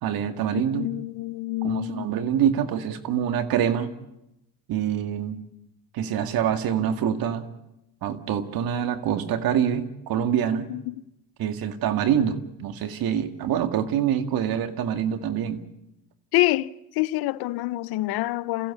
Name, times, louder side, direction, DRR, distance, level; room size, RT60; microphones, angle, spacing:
voice 1, 0.0-0.9 1.6-3.9 4.7-5.4 5.9-7.4 8.0-10.7 11.4-15.6, right 9 dB, 70° right, 2.1 m, -25 dB
voice 2, 0.5-2.1 10.7-10.9 16.3-18.7, left 18 dB, 75° left, 0.8 m, -26 dB
28.5 x 15.5 x 8.4 m
cardioid pair, 105°, 38 cm